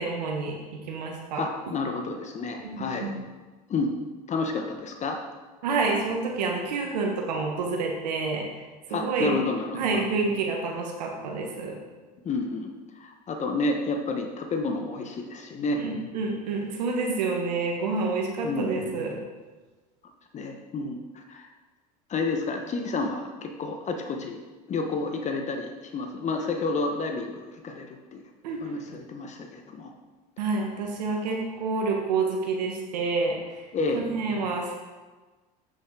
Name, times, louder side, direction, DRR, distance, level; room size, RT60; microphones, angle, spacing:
voice 1, 0.0-1.4 2.6-3.2 5.6-8.5 8.9-9.4 9.7-11.8 15.8-19.2 28.4-28.7 30.4-33.7 33.9-34.7, right 4 dB, 90° right, 1 dB, 1.3 m, -28 dB
voice 2, 1.3-3.1 3.7-3.9 4.3-5.2 8.9-9.8 12.2-15.8 18.4-18.7 20.3-21.5 22.1-24.4 24.7-28.2 28.6-29.9 33.7-34.0, left 3 dB, 35° left, 4 dB, 1.1 m, -30 dB
8.2 x 6.4 x 4.7 m, 1.3 s
supercardioid pair, 95°, 20 cm